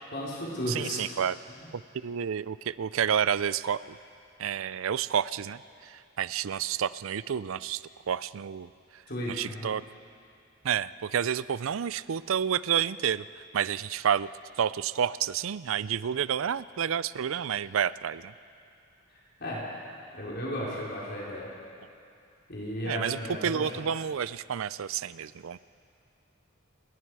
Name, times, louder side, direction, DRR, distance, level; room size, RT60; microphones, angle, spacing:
voice 1, 0.1-1.1 1.5-1.6 9.1-9.7 19.4-19.6 20.1-21.5 22.5-23.7, equal, 50° left, -6 dB, 3.9 m, -34 dB
voice 2, 0.7-1.4 1.7-4.0 4.4-9.0 9.3-9.8 10.6-13.3 13.5-14.3 14.6-18.3 22.8-25.6, right 8 dB, 80° right, 18 dB, 0.4 m, -30 dB
29.0 x 20.5 x 4.8 m, 2.5 s
head